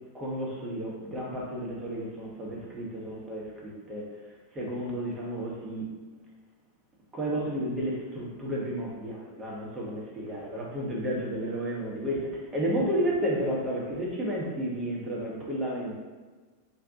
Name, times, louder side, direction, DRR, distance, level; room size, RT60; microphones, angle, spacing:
voice 1, 0.1-4.1 4.5-5.8 7.1-15.9, equal, 15° right, -4 dB, 0.8 m, -32 dB
2.7 x 2.3 x 3.5 m, 1.4 s
figure-of-eight pair, 90°, 0 cm